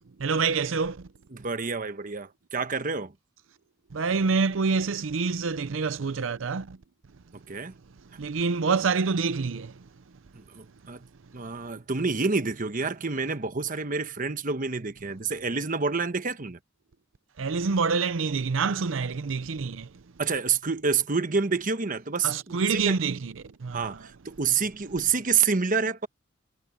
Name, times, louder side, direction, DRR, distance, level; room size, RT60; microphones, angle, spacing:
voice 1, 0.2-1.1 3.9-6.8 8.0-9.9 17.4-20.0 22.2-24.1, right 4 dB, 85° right, 0.6 m, -27 dB
voice 2, 1.3-3.1 7.5-7.7 10.3-11.1 11.3-16.6 20.2-23.0 23.7-26.1, right 5 dB, 45° right, 1.2 m, -28 dB
head